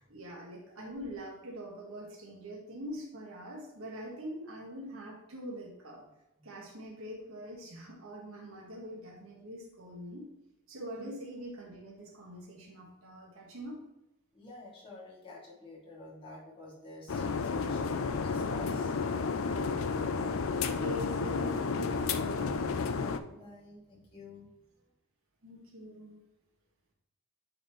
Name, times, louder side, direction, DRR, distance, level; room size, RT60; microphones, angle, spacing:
voice 1, 0.0-6.0 6.4-10.3 10.7-13.8 19.4-22.6 25.4-26.2, equal, 85° right, -2 dB, 1.5 m, -44 dB
voice 2, 14.3-18.9 22.3-24.4, left 2 dB, 25° left, -7 dB, 2.6 m, -49 dB
sound 1, 17.1-23.2, left 4 dB, 70° left, 0.5 m, -32 dB
8.8 x 4.2 x 3.2 m, 0.92 s
head